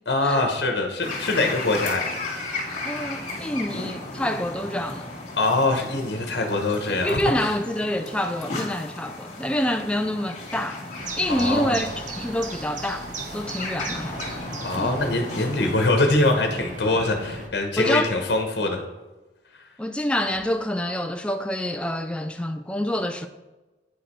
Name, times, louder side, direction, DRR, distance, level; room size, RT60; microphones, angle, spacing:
voice 1, 0.1-2.0 5.4-7.5 11.3-11.8 14.6-18.8, left 2 dB, 70° left, 1.1 m, -23 dB
sound 1, 1.0-15.7, left 2 dB, 45° left, 1.8 m, -35 dB
voice 2, 2.8-5.1 6.9-10.8 11.2-13.0 13.3-14.2 14.8-14.9 17.8-18.1 19.8-23.3, left 1 dB, 5° left, 0.3 m, -27 dB
sound 2, 11.0-17.5, right 3 dB, 45° right, 0.9 m, -37 dB
9.1 x 5.0 x 4.4 m
head